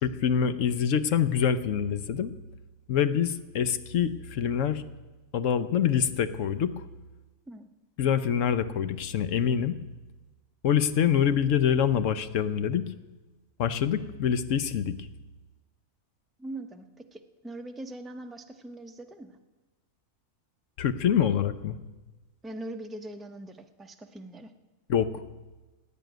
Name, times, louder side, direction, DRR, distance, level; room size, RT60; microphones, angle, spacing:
voice 1, 0.0-2.3 2.9-4.8 5.3-6.8 8.0-9.8 10.6-12.9 13.6-15.0 20.8-21.8 24.9-25.2, left 8 dB, 65° left, 12 dB, 1.1 m, -25 dB
voice 2, 16.4-19.4 22.4-24.5, right 1 dB, ahead, 5 dB, 0.6 m, -41 dB
16.0 x 9.1 x 9.2 m, 1.2 s
omnidirectional pair, 1.5 m